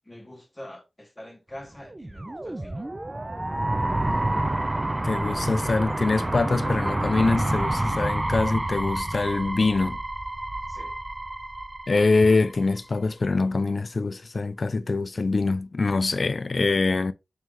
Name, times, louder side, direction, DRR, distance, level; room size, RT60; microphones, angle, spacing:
voice 1, 0.0-2.9 10.7-11.0, left 1 dB, 20° left, 0.9 m, -44 dB
sound 1, 1.8-12.8, right 1 dB, 25° right, 0.4 m, -28 dB
voice 2, 5.0-10.0 11.9-17.1, left 3 dB, 50° left, 0.3 m, -24 dB
3.6 x 3.2 x 3.0 m
cardioid pair, 60°, 0 cm